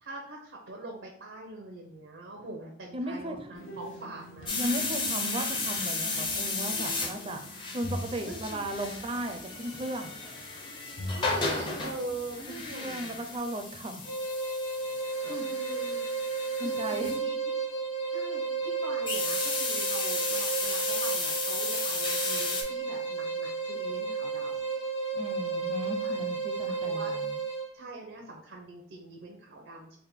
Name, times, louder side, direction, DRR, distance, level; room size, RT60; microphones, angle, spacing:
voice 1, 0.0-4.5 8.3-8.7 11.1-13.1 15.2-16.0 16.6-17.4 18.1-24.7 25.8-26.2 26.6-27.1 27.7-30.0, right 2 dB, 90° right, 0 dB, 0.7 m, -43 dB
voice 2, 2.9-3.5 4.6-7.4 7.7-10.1 12.5-14.0 15.2-15.5 16.6-17.1 25.1-27.3, right 1 dB, 30° right, 5 dB, 0.4 m, -36 dB
sound 1, 3.5-13.4, left 1 dB, 90° left, 0.8 m, -43 dB
sound 2, 4.5-17.2 19.1-22.6, left 3 dB, 25° left, 0.6 m, -34 dB
sound 3, 14.0-27.7, right 4 dB, 70° left, 1.4 m, -33 dB
3.5 x 2.1 x 4.3 m, 0.64 s
head